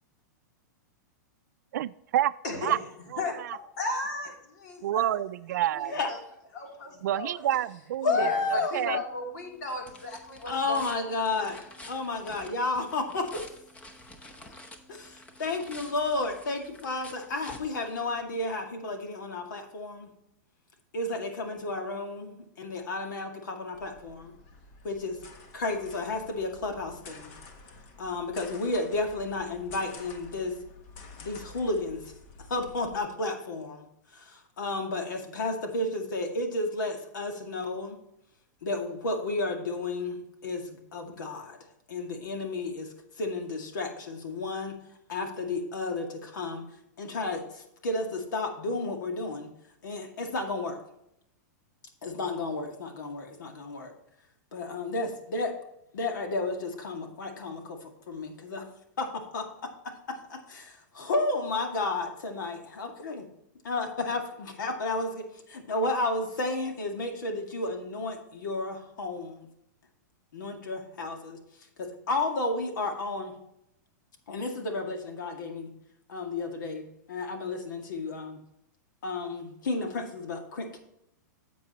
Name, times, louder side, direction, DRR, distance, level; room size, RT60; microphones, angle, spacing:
voice 1, 1.7-2.3 2.6-2.8 3.1-3.6 4.8-5.9 7.0-9.0, right 12 dB, 65° right, 16 dB, 0.4 m, -29 dB
voice 2, 2.4-2.8 3.2-3.3 3.8-4.3 4.6-5.2 5.7-6.2 6.5-7.4 8.1-10.8, left 2 dB, 65° left, 1 dB, 3.2 m, -35 dB
voice 3, 8.0-8.7 10.4-13.4 14.9-20.1 20.9-24.4 24.8-25.2 25.5-27.3 28.0-30.5 31.2-32.1 32.5-33.9 34.1-38.0 38.6-41.6 41.9-42.9 43.2-44.8 45.1-46.6 47.0-49.5 49.8-50.8 52.0-53.9 54.5-55.6 55.9-58.7 59.0-59.5 60.1-63.3 63.6-69.5 70.3-71.4 71.8-73.3 74.3-75.7 76.1-78.4 79.0-80.8, left 2 dB, 85° left, 3 dB, 2.1 m, -32 dB
sound 1, 9.0-18.5, left 1 dB, 10° left, 0.8 m, -49 dB
sound 2, 23.7-33.0, left 3 dB, 40° left, 1.3 m, -50 dB
10.0 x 7.7 x 3.0 m, 0.80 s
supercardioid pair, 155°, 10 cm